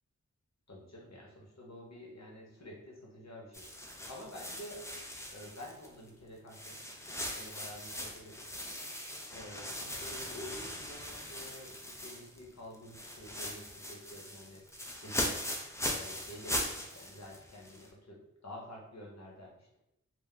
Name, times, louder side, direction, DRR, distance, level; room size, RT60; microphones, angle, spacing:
voice 1, 0.7-3.7 4.1-4.8 5.3-8.8 9.3-14.6 15.0-15.4 15.9-19.8, left 1 dB, 55° left, -2 dB, 1.0 m, -49 dB
sound 1, 3.5-6.1 6.5-12.5 12.7-17.9, left 1 dB, 10° left, 0.5 m, -40 dB
2.3 x 2.2 x 3.8 m, 0.84 s
cardioid pair, 40°, 32 cm